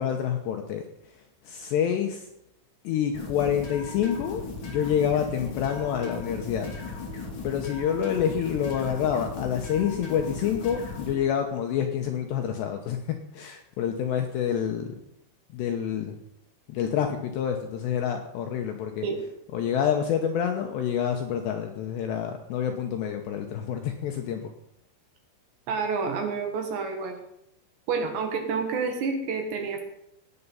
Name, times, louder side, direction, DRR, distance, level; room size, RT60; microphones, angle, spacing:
voice 1, 0.0-2.3 2.8-6.7 7.4-14.9 15.5-16.2 16.7-19.1 19.5-24.5, left 8 dB, 75° left, 4 dB, 2.6 m, -28 dB
sound 1, 3.1-11.1, left 3 dB, 40° left, 2.1 m, -37 dB
voice 2, 25.7-27.2 27.9-29.8, right 5 dB, 65° right, 4 dB, 3.6 m, -29 dB
18.0 x 8.4 x 5.7 m, 0.79 s
omnidirectional pair, 6.0 m